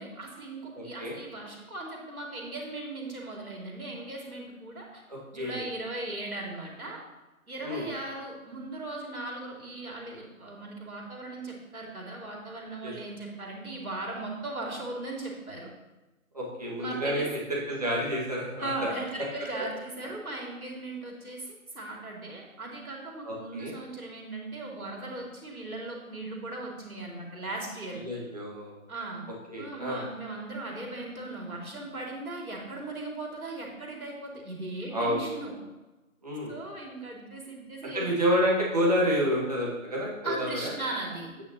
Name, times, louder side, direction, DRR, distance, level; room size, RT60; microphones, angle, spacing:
voice 1, 0.0-5.0 5.3-7.0 7.5-15.7 16.8-17.3 18.6-28.0 28.9-29.2 29.6-35.5 36.5-38.1 40.2-41.3, right 2 dB, 75° right, -1 dB, 2.6 m, -38 dB
voice 2, 0.7-1.2 5.1-5.6 7.6-7.9 12.8-12.9 16.3-18.9 23.2-23.7 28.0-28.8 29.5-30.0 34.9-35.3 36.2-36.5 37.9-40.7, equal, 25° right, -5 dB, 1.7 m, -29 dB
8.9 x 8.6 x 2.9 m, 1.1 s
figure-of-eight pair, 170°, 43 cm